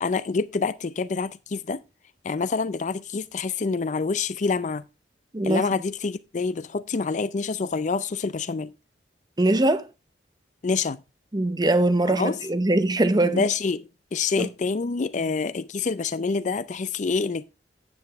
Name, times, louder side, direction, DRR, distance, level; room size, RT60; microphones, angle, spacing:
voice 1, 0.0-1.8 2.2-4.8 5.4-8.7 10.6-11.0 12.1-12.4 13.2-13.8 14.1-17.4, left 4 dB, 45° left, 0.4 m, -27 dB
voice 2, 9.4-9.9 11.3-13.4 14.4-14.5, right 2 dB, 25° right, 0.7 m, -22 dB
9.6 x 7.9 x 3.4 m
head